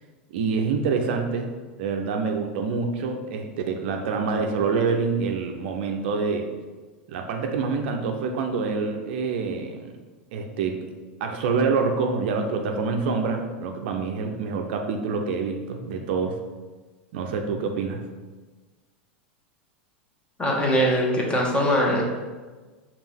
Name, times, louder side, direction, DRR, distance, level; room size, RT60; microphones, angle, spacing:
voice 1, 0.3-1.5 1.8-6.5 7.1-9.9 10.3-10.8 11.2-16.4 17.1-18.0, right 4 dB, 65° right, 4 dB, 0.5 m, -26 dB
voice 2, 20.4-22.0, equal, 15° left, -2 dB, 1.2 m, -21 dB
5.2 x 2.5 x 3.4 m, 1.3 s
hypercardioid pair, 95°, 6 cm